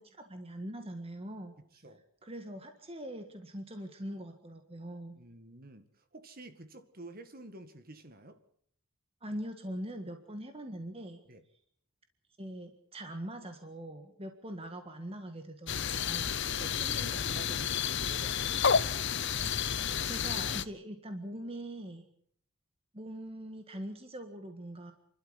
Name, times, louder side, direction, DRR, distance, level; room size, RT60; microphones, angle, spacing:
voice 1, 0.0-1.5 2.2-5.2 9.2-11.2 12.4-16.4 20.0-22.0 22.9-24.9, right 1 dB, 25° right, 1.7 m, -42 dB
voice 2, 1.6-2.0 5.1-8.4 11.3-11.4 16.4-18.8, right 1 dB, 45° right, 2.0 m, -49 dB
sound 1, 15.7-20.6, left 7 dB, 55° left, 0.8 m, -31 dB
28.5 x 12.5 x 8.1 m
head